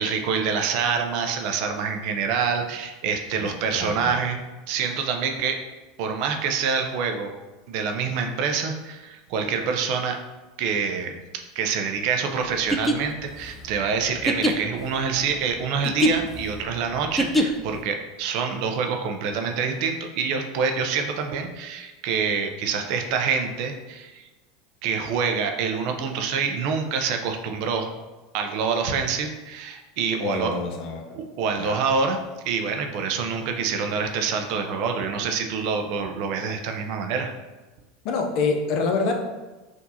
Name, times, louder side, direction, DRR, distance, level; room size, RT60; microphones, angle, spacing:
voice 1, 0.0-4.4 4.7-5.6 6.0-7.3 7.7-10.2 10.6-24.3 24.8-27.9 28.3-30.5 31.1-37.3, right 5 dB, 60° right, 4 dB, 0.6 m, -26 dB
voice 2, 3.7-4.2 30.2-31.2 31.6-31.8 38.0-39.1, left 4 dB, 55° left, 4 dB, 0.7 m, -26 dB
sound 1, 12.7-17.8, equal, 10° left, 0.5 m, -25 dB
5.9 x 2.7 x 2.8 m, 1.1 s
hypercardioid pair, 85°, 0 cm